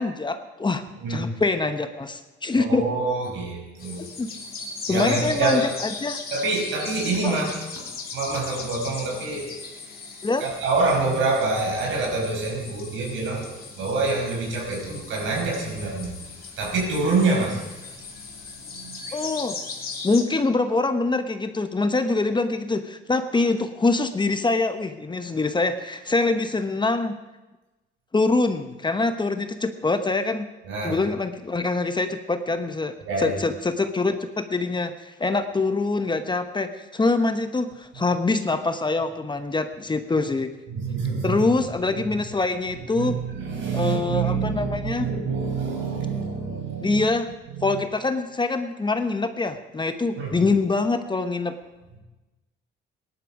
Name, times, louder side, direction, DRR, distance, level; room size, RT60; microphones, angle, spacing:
voice 1, 0.0-0.8 1.1-2.8 4.0-4.3 4.9-6.2 7.2-7.4 10.2-10.5 19.1-19.6 20.0-27.2 28.1-30.5 30.8-40.5 41.2-43.2 43.7-45.0 46.8-47.3 47.6-51.6, left 3 dB, 25° left, 9 dB, 1.0 m, -24 dB
voice 2, 2.6-4.0 4.9-5.7 6.3-7.8 8.1-9.5 10.4-13.5 13.8-16.1 16.6-17.6 18.8-19.0 30.7-31.0 33.0-33.4 40.7-41.4 41.9-42.0 43.0-47.0 47.5-47.6 50.1-50.4, right 3 dB, 75° right, 0 dB, 5.1 m, -26 dB
sound 1, 3.8-20.2, left 4 dB, 50° left, 2.9 m, -38 dB
18.0 x 11.0 x 5.0 m, 1.1 s
cardioid pair, 90°, 20 cm